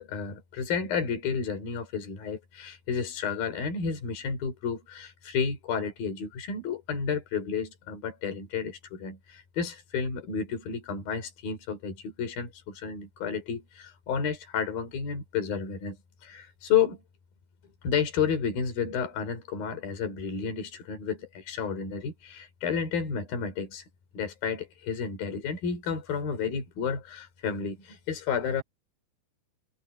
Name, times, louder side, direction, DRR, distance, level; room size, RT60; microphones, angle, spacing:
voice 1, 0.0-16.0 16.2-17.0 17.8-23.9 24.1-28.6, left 6 dB, 70° left, 5.8 m, -31 dB
omnidirectional pair, 4.3 m